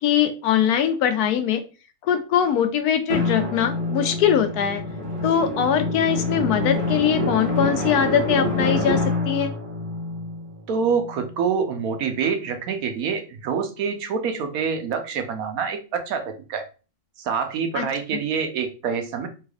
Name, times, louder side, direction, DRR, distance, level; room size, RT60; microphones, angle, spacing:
voice 1, 0.0-1.6 2.0-4.8 5.2-9.5 17.7-17.8 18.1-18.2, left 8 dB, 90° left, 8 dB, 1.1 m, -22 dB
Drum, 3.1-11.4, left 2 dB, 40° right, 1.1 m, -26 dB
voice 2, 10.7-16.6 17.2-19.3, right 6 dB, 75° right, 6 dB, 1.1 m, -26 dB
3.3 x 3.2 x 2.3 m, 0.33 s
omnidirectional pair, 1.6 m